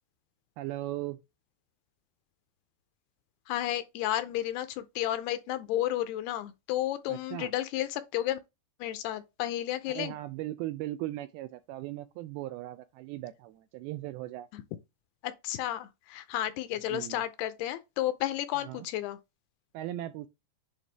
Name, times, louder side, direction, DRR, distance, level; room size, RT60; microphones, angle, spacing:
voice 1, 0.6-1.2 7.1-7.5 9.9-14.5 16.9-17.2 18.5-18.9 19.7-20.3, right 15 dB, 85° right, 2.2 m, -38 dB
voice 2, 3.5-8.4 8.8-10.1 14.5-14.6 15.2-19.2, left 13 dB, 85° left, 2.5 m, -32 dB
8.5 x 3.5 x 3.4 m
omnidirectional pair, 4.8 m